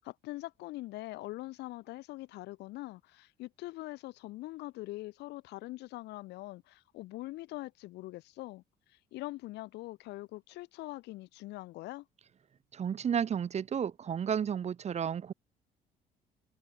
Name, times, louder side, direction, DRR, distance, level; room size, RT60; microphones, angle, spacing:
voice 1, 0.0-8.6 8.9-12.1, left 18 dB, 85° left, 7.5 m, -43 dB
voice 2, 12.7-15.3, right 8 dB, 40° right, 1.5 m, -32 dB
cardioid pair, 110°, 17 cm